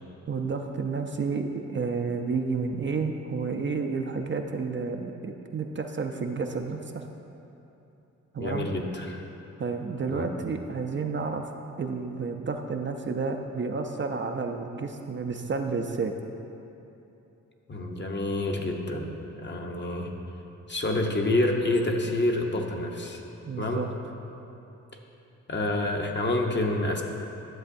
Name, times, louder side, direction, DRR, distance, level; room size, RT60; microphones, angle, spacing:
voice 1, 0.3-7.0 8.3-8.7 9.6-11.5 11.8-16.1 23.5-23.9, right 4 dB, 40° right, 4 dB, 0.5 m, -31 dB
voice 2, 8.4-9.2 10.1-10.3 17.7-20.1 20.7-23.2 23.6-23.8 25.5-27.0, left 2 dB, 35° left, 1 dB, 0.8 m, -28 dB
11.0 x 7.2 x 2.6 m, 2.9 s
cardioid pair, 70°, 31 cm